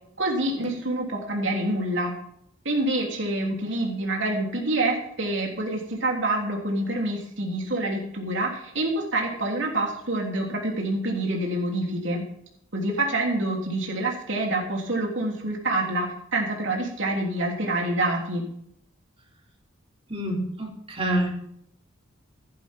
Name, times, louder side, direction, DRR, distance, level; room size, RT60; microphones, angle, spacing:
voice 1, 0.2-2.1 2.7-12.2 12.7-18.4, right 2 dB, 65° right, -1 dB, 3.3 m, -27 dB
voice 2, 20.1-21.3, right 1 dB, 30° right, -1 dB, 3.6 m, -27 dB
15.5 x 11.0 x 3.7 m, 0.72 s
head